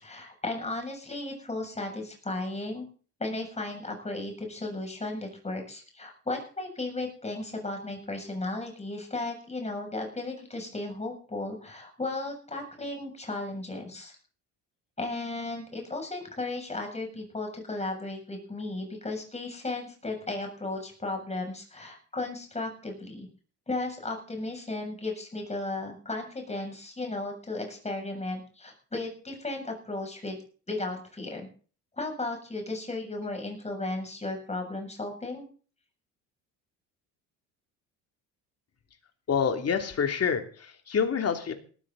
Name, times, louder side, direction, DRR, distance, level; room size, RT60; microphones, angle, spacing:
voice 1, 0.0-2.8 3.2-14.2 15.0-23.3 23.7-30.4 30.7-31.5 32.0-35.5, left 2 dB, 20° left, 3 dB, 7.5 m, -35 dB
voice 2, 39.3-41.5, left 6 dB, 40° left, 5 dB, 3.1 m, -27 dB
18.5 x 14.0 x 4.1 m, 0.41 s
supercardioid pair, 90°, 36 cm